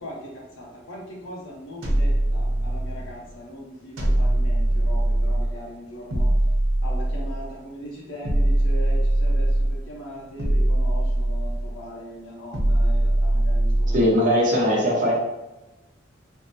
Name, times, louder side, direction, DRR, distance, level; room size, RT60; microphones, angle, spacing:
voice 1, 0.0-6.3 6.8-14.4, equal, 85° left, -3 dB, 0.7 m, -39 dB
sound 1, 1.8-3.1 4.0-5.6 6.1-7.5 8.2-9.9 10.4-11.8 12.5-14.1, right 1 dB, 85° right, 0.7 m, -21 dB
voice 2, 13.9-15.1, equal, 45° right, -3 dB, 0.8 m, -20 dB
3.5 x 2.0 x 2.7 m, 1.0 s
head